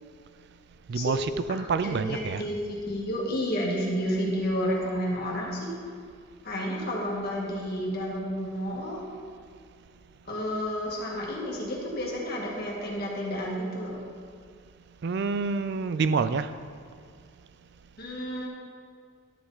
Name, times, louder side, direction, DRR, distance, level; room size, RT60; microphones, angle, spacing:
voice 1, 0.9-2.4 15.0-16.5, right 4 dB, 55° right, 12 dB, 0.4 m, -27 dB
voice 2, 1.8-5.7 6.4-9.0 10.3-14.0 18.0-18.5, equal, 50° left, -3 dB, 1.8 m, -31 dB
12.0 x 6.2 x 3.9 m, 2.1 s
head